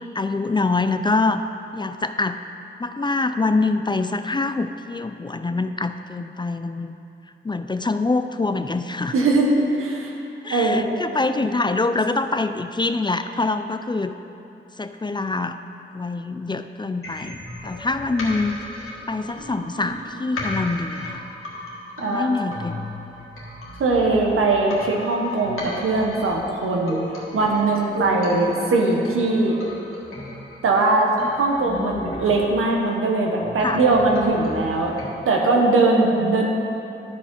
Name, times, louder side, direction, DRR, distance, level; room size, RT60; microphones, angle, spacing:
voice 1, 0.1-1.4 1.7-2.4 2.8-7.0 7.4-9.1 10.4-14.1 14.8-15.6 15.9-18.6 19.1-21.3 22.1-22.8 31.6-32.2 33.6-33.8 36.2-36.5, left 3 dB, 20° left, 9 dB, 0.4 m, -25 dB
voice 2, 9.1-9.5 9.8-10.1 10.5-10.8 22.0-22.3 23.8-27.0 27.3-29.6 30.6-31.1 31.4-34.9 35.2-36.5, right 3 dB, 90° right, 0 dB, 1.2 m, -20 dB
sound 1, 17.0-35.0, left 1 dB, 85° left, 1.6 m, -36 dB
12.5 x 4.6 x 5.3 m, 2.8 s
cardioid pair, 55°, 21 cm